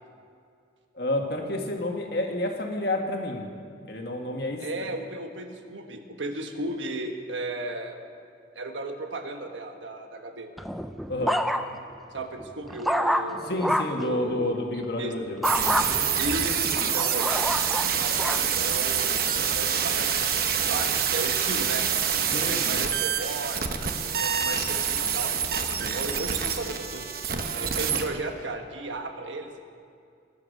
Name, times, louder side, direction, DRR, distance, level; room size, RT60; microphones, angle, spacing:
voice 1, 1.0-3.5 3.9-4.6 11.1-11.4 13.5-16.0 22.3-22.8 25.8-26.0, left 1 dB, 55° left, 2 dB, 1.7 m, -30 dB
voice 2, 4.6-8.0 8.5-10.5 12.1-13.6 14.0-14.6 15.0-15.1 16.2-17.5 17.9-21.9 22.3-25.3 25.9-27.1 27.5-29.5, right 2 dB, 80° right, 5 dB, 1.3 m, -35 dB
sound 1, 10.6-11.9 12.4-14.1 15.4-15.9 16.5-18.5 19.1-19.5, equal, ahead, 0.4 m, -27 dB
sound 2, 15.4-28.1, right 7 dB, 50° right, 0.9 m, -26 dB
21.5 x 7.4 x 6.6 m, 2.3 s
head